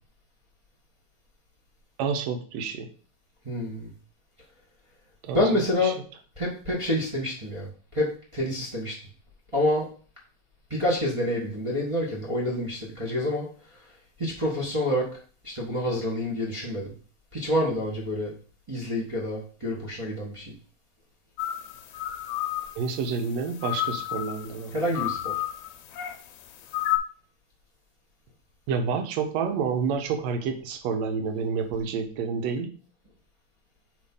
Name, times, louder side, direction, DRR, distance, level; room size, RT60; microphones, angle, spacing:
voice 1, 2.0-2.9 5.2-5.9 22.8-24.8 28.7-32.7, right 5 dB, 70° right, 6 dB, 1.9 m, -29 dB
voice 2, 3.4-3.9 5.3-6.0 6.4-7.7 7.9-8.9 9.5-9.9 10.7-13.5 14.2-15.1 15.4-16.9 17.3-18.3 18.7-20.4 24.7-25.3, left 1 dB, 40° right, -6 dB, 0.4 m, -27 dB
sound 1, 21.4-27.0, left 14 dB, 75° left, 1.7 m, -32 dB
5.2 x 3.7 x 5.3 m, 0.42 s
omnidirectional pair, 3.3 m